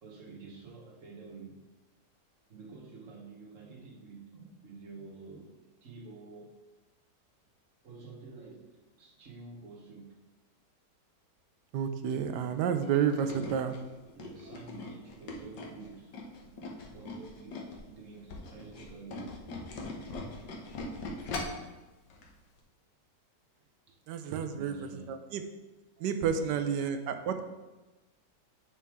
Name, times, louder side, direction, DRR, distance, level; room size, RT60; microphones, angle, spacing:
voice 1, 0.0-1.6 2.5-6.6 7.8-10.1 13.2-13.9 14.1-16.4 16.7-19.4 21.0-21.8 22.1-22.2 23.6-24.0 24.3-25.3 26.0-26.7, right 4 dB, 50° right, -1 dB, 1.5 m, -49 dB
voice 2, 11.7-13.7 24.1-25.4 26.0-27.4, right 7 dB, 80° right, 8 dB, 1.2 m, -30 dB
Tools, 12.8-17.8 18.2-21.7 22.1-22.3 22.6-22.7, left 3 dB, 75° left, 1.6 m, -41 dB
9.7 x 4.3 x 3.6 m, 1.1 s
omnidirectional pair, 1.9 m